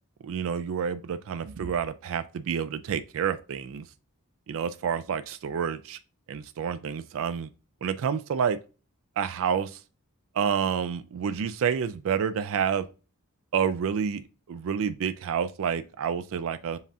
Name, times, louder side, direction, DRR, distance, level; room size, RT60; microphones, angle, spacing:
voice 1, 0.2-3.9 4.5-6.0 6.3-7.5 7.8-8.6 9.2-9.8 10.3-12.9 13.5-16.8, right 7 dB, 65° right, 0.4 m, -29 dB
7.1 x 2.4 x 2.7 m
head